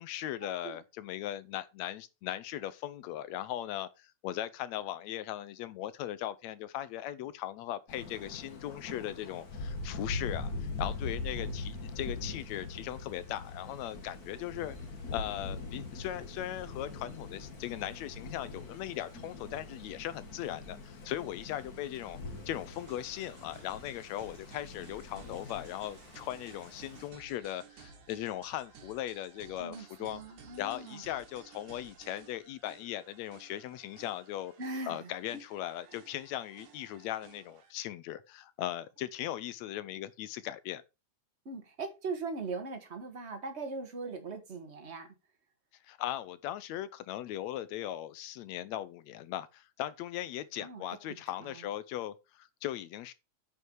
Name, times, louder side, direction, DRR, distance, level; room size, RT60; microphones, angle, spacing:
voice 1, 0.0-14.8 15.1-22.2 22.5-30.2 30.6-34.5 34.8-40.8 45.8-53.1, left 13 dB, 75° left, 1.8 m, -38 dB
Thunder, 7.9-27.1, left 3 dB, 35° left, 1.8 m, -42 dB
sound 1, 22.7-37.7, right 6 dB, 70° right, 3.1 m, -56 dB
voice 2, 30.1-31.0 34.6-35.4 41.4-45.1 50.6-50.8 51.1-51.6, right 3 dB, 30° right, 1.4 m, -40 dB
9.3 x 5.7 x 4.7 m
omnidirectional pair, 3.5 m